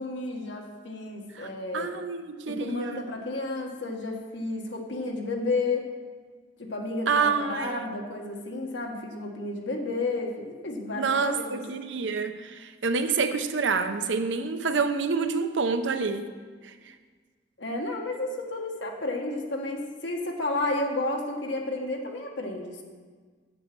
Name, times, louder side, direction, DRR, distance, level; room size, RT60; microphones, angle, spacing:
voice 1, 0.0-1.9 2.5-5.9 6.6-11.6 17.6-22.8, left 2 dB, 80° left, 1 dB, 1.5 m, -32 dB
voice 2, 1.7-3.0 7.1-7.9 10.9-16.3, right 5 dB, 90° right, 9 dB, 0.7 m, -27 dB
7.7 x 6.0 x 7.8 m, 1.5 s
head